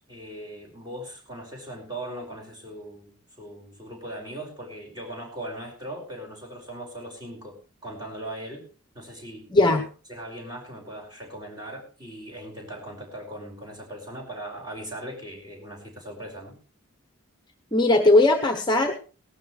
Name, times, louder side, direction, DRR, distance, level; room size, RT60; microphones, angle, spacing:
voice 1, 0.0-7.6 7.8-8.6 8.9-9.8 10.1-16.5, right 1 dB, 20° right, -1 dB, 5.2 m, -39 dB
voice 2, 9.5-9.8 17.7-18.9, left 2 dB, 20° left, 5 dB, 0.8 m, -18 dB
18.5 x 12.5 x 3.2 m, 0.36 s
head